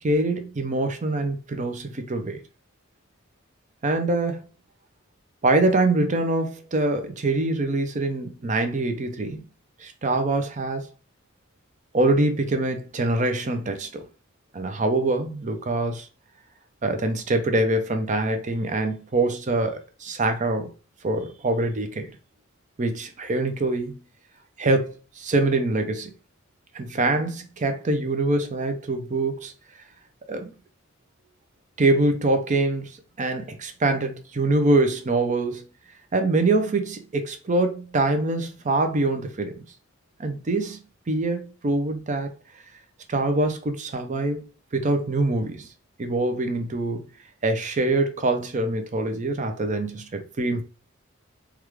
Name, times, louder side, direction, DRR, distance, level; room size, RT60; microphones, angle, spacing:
voice 1, 0.0-2.4 3.8-4.4 5.4-9.4 9.8-10.8 11.9-14.0 14.5-16.1 16.8-20.7 21.0-22.1 22.8-24.0 24.6-26.1 26.7-29.5 30.3-30.5 31.8-32.9 33.2-35.7 36.1-39.5 40.2-40.8 41.1-42.3 43.1-45.7 46.0-47.1 47.4-50.6, right 2 dB, 40° right, 0.5 m, -24 dB
3.4 x 2.4 x 3.1 m
head